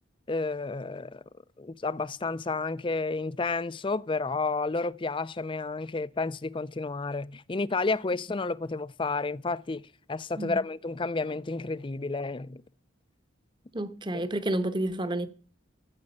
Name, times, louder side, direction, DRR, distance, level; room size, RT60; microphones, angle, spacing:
voice 1, 0.3-1.2 1.6-9.8 10.1-12.6, left 3 dB, 25° left, 0.5 m, -31 dB
voice 2, 13.7-15.3, right 1 dB, 25° right, 1.0 m, -30 dB
14.5 x 7.7 x 5.5 m
head